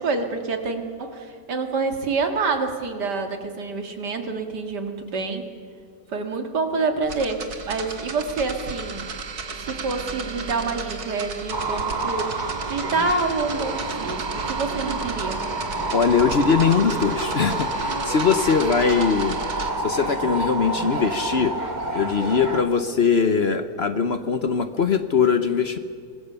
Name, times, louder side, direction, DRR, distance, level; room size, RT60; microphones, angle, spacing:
voice 1, 0.0-5.4 6.1-9.1 9.6-15.5, right 4 dB, 85° right, 5 dB, 2.6 m, -27 dB
sound 1, 7.0-19.7, right 4 dB, 70° right, 2.2 m, -34 dB
sound 2, 11.5-22.6, right 2 dB, 25° right, 1.7 m, -28 dB
voice 2, 15.9-19.4 19.8-21.5 21.9-25.8, left 6 dB, 45° left, 10 dB, 1.0 m, -21 dB
25.5 x 20.5 x 6.9 m, 2.4 s
omnidirectional pair, 1.7 m